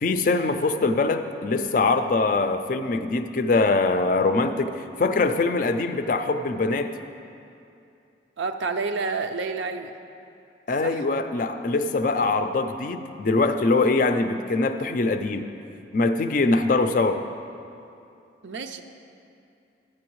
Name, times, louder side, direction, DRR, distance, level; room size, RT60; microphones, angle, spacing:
voice 1, 0.0-6.9 10.7-15.5 15.9-17.2, left 3 dB, 45° left, 8 dB, 0.4 m, -23 dB
voice 2, 8.4-9.9 10.8-11.0 18.4-18.8, right 4 dB, 80° right, 7 dB, 0.5 m, -29 dB
12.5 x 8.5 x 3.1 m, 2.6 s
head